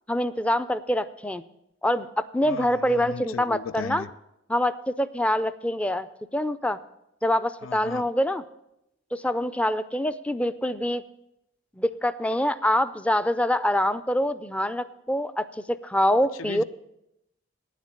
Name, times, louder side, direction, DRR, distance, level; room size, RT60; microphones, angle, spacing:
voice 1, 0.1-1.4 1.8-4.1 4.5-6.1 6.3-6.8 7.2-8.4 9.1-11.0 11.8-16.6, left 1 dB, 5° left, 0.3 m, -25 dB
voice 2, 2.4-4.1 7.6-8.0 16.3-16.6, left 5 dB, 90° left, 0.4 m, -37 dB
9.5 x 7.4 x 8.5 m
head